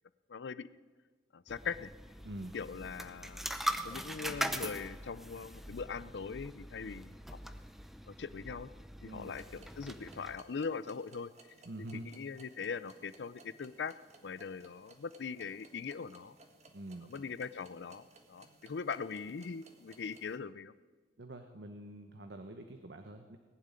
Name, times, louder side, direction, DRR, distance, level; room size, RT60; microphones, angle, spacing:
voice 1, 0.3-0.7 1.3-1.9 2.5-3.5 3.8-7.6 8.1-8.7 9.0-11.3 11.8-14.0 14.2-16.4 17.1-20.7, left 5 dB, 75° left, 16 dB, 0.5 m, -41 dB
sound 1, 1.5-10.4, equal, ahead, 0.7 m, -42 dB
voice 2, 2.2-2.6 9.0-9.4 11.6-12.1 16.7-17.1 21.2-23.4, right 1 dB, 70° right, 6 dB, 1.0 m, -46 dB
sound 2, 9.2-20.4, right 3 dB, 40° right, 1.6 m, -61 dB
19.0 x 7.6 x 9.8 m, 1.5 s
head